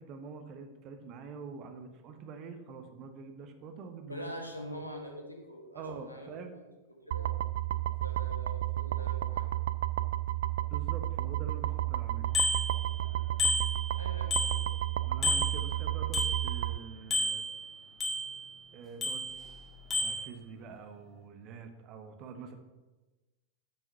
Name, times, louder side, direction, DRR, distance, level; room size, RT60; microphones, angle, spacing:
voice 1, 0.0-4.2 5.7-6.5 10.7-12.3 15.0-17.4 18.7-19.2 19.9-22.6, right 5 dB, 35° right, 6 dB, 1.2 m, -45 dB
voice 2, 4.1-7.3 8.0-9.5 14.0-14.7, equal, 90° left, 1 dB, 1.7 m, -44 dB
sound 1, 7.1-16.8, right 15 dB, 60° right, 0.3 m, -32 dB
Bicycle bell, 12.3-13.1 13.4-14.9 15.2-16.8 17.1-18.5 19.0-19.6 19.9-20.3, left 1 dB, 25° left, 1.9 m, -32 dB
8.9 x 6.3 x 5.5 m, 1.2 s
figure-of-eight pair, 90°, 0 cm